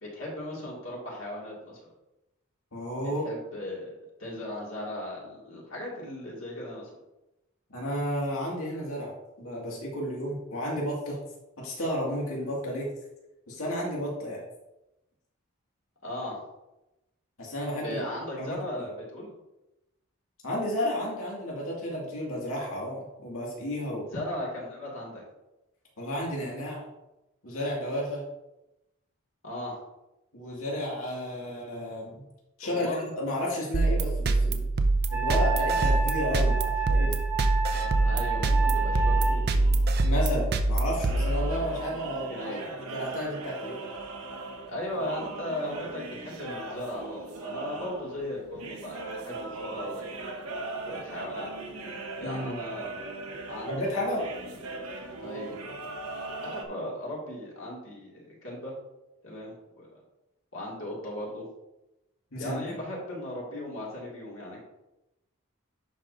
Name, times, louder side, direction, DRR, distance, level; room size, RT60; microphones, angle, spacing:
voice 1, 0.0-1.8 3.2-6.9 16.0-16.4 17.8-19.3 24.1-25.2 29.4-29.8 32.7-33.0 38.0-39.6 42.1-42.6 44.7-50.2 50.9-51.5 52.2-53.1 53.5-54.3 55.2-55.6 56.4-58.7 59.2-59.9 60.5-61.4 62.4-64.6, left 1 dB, 65° left, -4 dB, 2.4 m, -37 dB
voice 2, 2.7-3.3 7.7-11.2 11.6-12.9 13.5-14.4 17.4-18.0 18.4-18.9 20.4-24.1 26.0-26.8 27.4-28.2 30.3-32.2 32.6-34.7 35.1-37.2 40.0-42.3 42.8-43.8 52.2-52.6 53.7-54.2 62.3-62.7, equal, 80° left, -4 dB, 2.3 m, -32 dB
sound 1, 33.7-41.9, right 2 dB, 45° right, 0.5 m, -25 dB
Wind instrument woodwind instrument, 35.1-39.4, right 4 dB, 10° right, 0.9 m, -30 dB
sound 2, 37.7-56.6, right 2 dB, 90° right, 1.2 m, -40 dB
10.5 x 5.0 x 2.7 m, 0.95 s
head